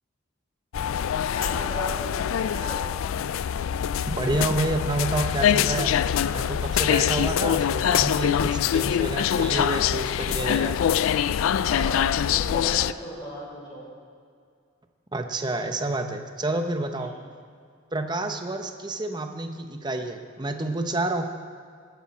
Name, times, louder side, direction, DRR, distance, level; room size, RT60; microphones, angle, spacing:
sound 1, 0.7-12.9, left 9 dB, 85° left, 0.3 m, -24 dB
voice 1, 1.3-2.8 11.5-13.8 16.9-17.1, equal, 20° left, -5 dB, 4.3 m, -37 dB
voice 2, 4.1-6.0 6.3-10.8 15.1-17.1 17.9-21.3, right 2 dB, 20° right, 6 dB, 0.8 m, -29 dB
19.0 x 10.0 x 4.2 m, 2.2 s
head